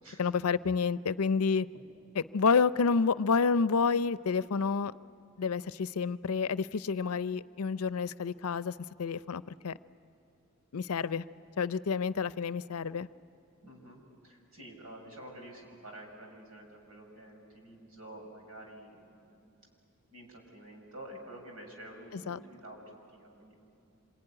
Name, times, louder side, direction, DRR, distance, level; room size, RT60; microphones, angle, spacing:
voice 1, 0.2-1.7 2.2-4.9 5.4-8.7 9.0-9.7 10.7-11.2 11.6-13.1 22.1-22.4, left 5 dB, 90° left, 16 dB, 0.5 m, -29 dB
voice 2, 13.6-19.5 20.1-23.9, right 1 dB, 75° right, 2 dB, 5.5 m, -49 dB
26.0 x 23.0 x 9.8 m, 2.6 s
head